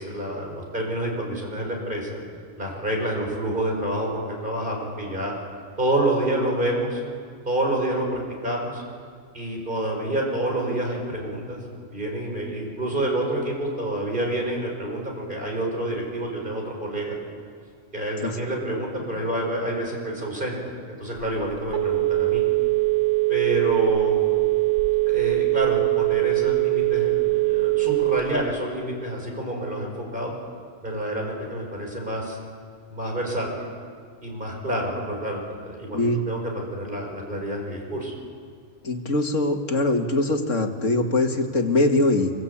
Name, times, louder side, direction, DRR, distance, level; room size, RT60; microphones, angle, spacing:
voice 1, 0.0-2.2 2.5-5.3 5.8-7.0 7.4-8.8 9.3-11.6 11.9-17.2 17.9-20.6 21.0-22.4 23.3-24.2 25.1-30.3 30.8-32.4 32.9-33.7 34.2-38.1, right 1 dB, 40° right, -1 dB, 6.1 m, -28 dB
Telephone, 21.2-28.5, right 21 dB, 65° right, 1.8 m, -22 dB
voice 2, 38.8-42.3, left 2 dB, 75° left, 4 dB, 2.3 m, -22 dB
25.5 x 23.0 x 8.7 m, 2.1 s
omnidirectional pair, 1.3 m